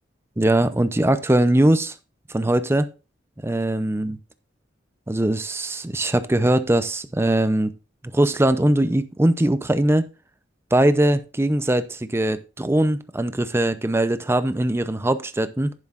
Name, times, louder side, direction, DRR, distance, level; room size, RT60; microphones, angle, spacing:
voice 1, 0.4-1.9 2.3-2.9 3.4-4.2 5.1-7.7 8.0-10.1 10.7-15.7, right 1 dB, 15° right, 0.6 m, -21 dB
11.0 x 9.8 x 2.5 m
head